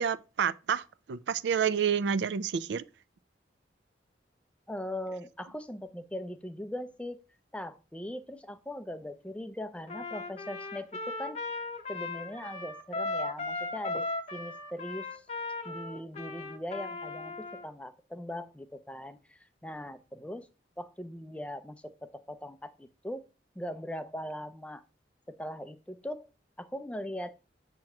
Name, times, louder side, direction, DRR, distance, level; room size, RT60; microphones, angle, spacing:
voice 1, 0.0-2.8, right 7 dB, 75° right, 0.4 m, -29 dB
voice 2, 4.7-7.2 7.5-11.4 11.9-15.2 15.6-20.5 20.8-23.2 23.6-24.8 25.4-26.3 26.6-27.3, left 1 dB, 5° left, 0.4 m, -40 dB
Trumpet, 9.9-17.6, left 3 dB, 35° left, 0.8 m, -37 dB
7.5 x 3.0 x 5.8 m
head